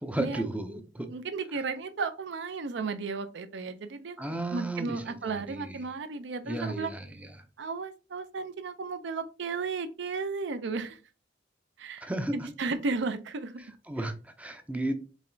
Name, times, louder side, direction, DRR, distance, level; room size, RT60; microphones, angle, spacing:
voice 1, 0.0-1.1 4.2-5.8 6.4-7.3 12.0-12.5 13.9-15.0, right 1 dB, 10° right, 0.4 m, -34 dB
voice 2, 1.0-6.9 7.6-11.0 11.8-13.6, right 4 dB, 65° right, 0.5 m, -34 dB
4.7 x 3.0 x 2.6 m
head